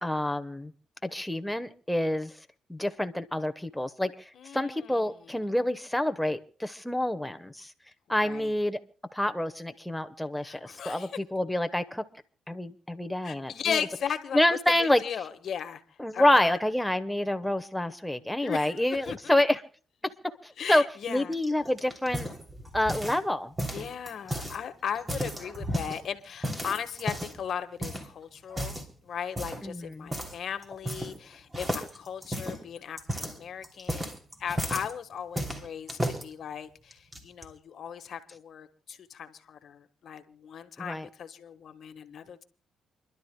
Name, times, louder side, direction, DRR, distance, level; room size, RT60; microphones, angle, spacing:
voice 1, 0.0-0.7 1.0-2.3 2.7-4.1 4.5-7.7 8.1-8.8 9.1-12.0 12.5-13.8 14.3-15.0 16.0-19.6 20.4-22.3 22.7-23.5 29.6-30.1 40.8-41.1, left 1 dB, 5° left, 9 dB, 1.1 m, -27 dB
voice 2, 4.3-5.4 8.2-8.5 10.4-11.1 13.2-15.8 16.1-16.6 18.4-18.8 19.1-19.2 20.6-21.3 23.7-34.1 34.4-42.4, left 8 dB, 60° left, 8 dB, 1.4 m, -37 dB
sound 1, 21.3-23.3 23.6-24.6 24.9-26.0 26.4-27.4 27.8-28.1 28.5-28.9 29.4-29.7 30.1-30.4 30.6-31.3 31.5-34.9 35.4-36.2 36.9-37.4, equal, 20° right, 3.1 m, -34 dB
29.0 x 12.0 x 2.3 m, 0.40 s
cardioid pair, 90°, 0 cm